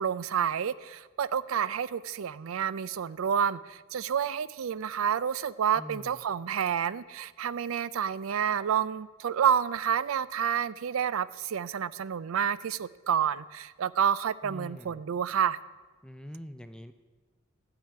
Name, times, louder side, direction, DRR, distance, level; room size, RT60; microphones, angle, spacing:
voice 1, 0.0-15.6, right 8 dB, 90° right, 18 dB, 0.4 m, -29 dB
voice 2, 5.8-6.2 14.4-15.0 16.0-16.9, equal, 5° left, 9 dB, 0.4 m, -44 dB
12.5 x 5.0 x 8.8 m, 1.3 s
head